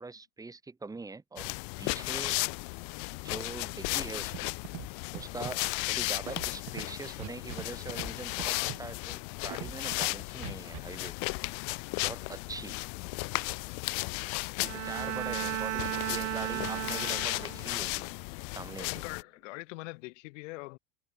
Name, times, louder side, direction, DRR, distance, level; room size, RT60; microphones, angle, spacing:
voice 1, 0.0-1.5 1.8-2.4 3.2-4.5 5.1-11.3 12.0-12.8 14.6-18.1 18.5-19.0, right 3 dB, 10° right, 2.9 m, -43 dB
sound 1, 1.4-19.2, left 40 dB or more, 55° left, 1.1 m, -35 dB
Scratching (performance technique), 4.3-4.4 4.6-4.9 5.1-5.6 6.2-6.8 7.2-7.6 7.9-8.1 8.4-8.8 9.5-10.1 10.4-10.8, right 21 dB, 45° right, 2.7 m, -40 dB
Bowed string instrument, 14.6-17.8, right 20 dB, 85° right, 1.2 m, -35 dB
voice 2, 18.9-20.8, left 23 dB, 70° left, 3.5 m, -43 dB
supercardioid pair, 155°, 38 cm